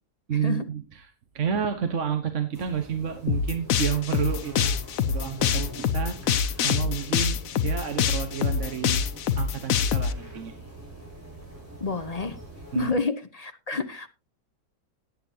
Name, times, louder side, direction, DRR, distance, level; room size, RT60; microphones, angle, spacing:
voice 1, 0.3-4.7 5.1-9.0 9.3-10.5 12.7-12.9, right 8 dB, 55° right, 1.4 m, -30 dB
sound 1, 2.5-12.9, equal, 10° right, 5.8 m, -44 dB
sound 2, 3.3-10.1, left 7 dB, 65° left, 1.1 m, -25 dB
voice 2, 11.8-12.4 12.7-14.1, left 3 dB, 35° left, 0.6 m, -29 dB
17.5 x 8.7 x 2.8 m
omnidirectional pair, 1.6 m